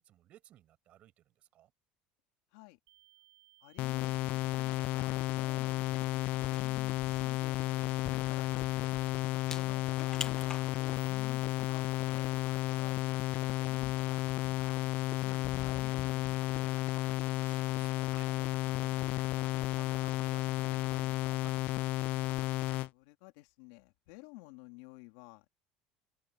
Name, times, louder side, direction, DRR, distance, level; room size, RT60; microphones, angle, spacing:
voice 1, 0.0-1.7 16.8-22.0, right 13 dB, 45° right, 7.2 m, -59 dB
sound 1, 2.9-22.9, right 18 dB, 90° right, 5.7 m, -63 dB
voice 2, 3.6-8.7 9.5-14.8 15.2-16.3 22.9-25.5, left 23 dB, 85° left, 3.0 m, -52 dB
sound 2, 3.8-22.9, left 18 dB, 55° left, 0.3 m, -33 dB
sound 3, 5.6-16.4, left 5 dB, 20° left, 0.9 m, -49 dB
cardioid pair, 145°, 3 cm